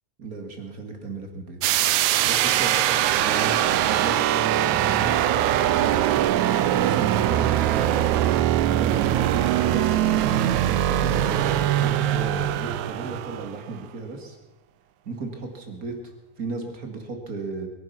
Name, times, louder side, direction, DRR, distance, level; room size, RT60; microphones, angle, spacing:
voice 1, 0.2-1.6 2.2-2.8 3.1-6.2 6.6-8.1 8.8-10.0 10.9-14.4 15.1-16.0 16.4-17.7, right 3 dB, 30° right, 3 dB, 2.3 m, -34 dB
sound 1, 1.6-13.6, right 12 dB, 80° right, 2.1 m, -22 dB
22.0 x 10.5 x 5.9 m, 1.1 s
omnidirectional pair, 3.4 m